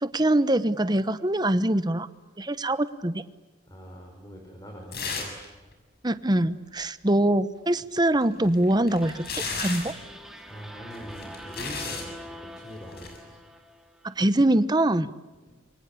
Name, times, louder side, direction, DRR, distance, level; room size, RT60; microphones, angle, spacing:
voice 1, 0.0-2.1 2.4-3.2 6.0-9.2 9.6-9.9 14.0-15.1, right 1 dB, 20° right, 13 dB, 1.0 m, -23 dB
voice 2, 3.7-5.4 10.2-13.4, equal, 20° left, 1 dB, 5.3 m, -43 dB
sound 1, 4.9-5.5 5.7-5.8 8.2-10.0 10.9-12.1 12.9-13.2, left 4 dB, 55° left, 6.6 m, -34 dB
sound 2, 9.0-14.3, equal, ahead, 2.4 m, -45 dB
28.0 x 25.0 x 8.5 m, 1.2 s
head